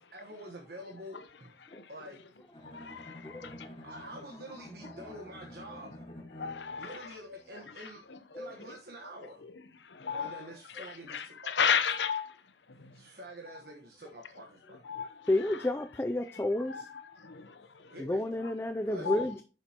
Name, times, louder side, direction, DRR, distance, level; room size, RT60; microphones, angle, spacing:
voice 1, 0.1-1.5 1.9-2.2 3.8-6.0 6.8-8.0 8.3-9.4 10.2-11.7 12.0-12.1 12.9-14.8 17.8-18.2 18.8-19.2, right 1 dB, 60° right, 1.3 m, -47 dB
Bowed string instrument, 2.5-6.9, left 1 dB, 30° left, 1.6 m, -49 dB
voice 2, 2.6-3.7 4.8-4.9 6.3-7.1 7.8-8.2 9.4-9.5 9.8-10.4 10.7-12.3 12.7-13.0 14.8-15.3 16.7-18.0 19.0-19.2, left 7 dB, 80° left, 0.8 m, -34 dB
voice 3, 3.2-3.6 8.3-8.5 10.1-10.2 15.3-16.9 18.0-19.4, left 1 dB, 15° left, 0.3 m, -31 dB
9.7 x 6.8 x 3.0 m
head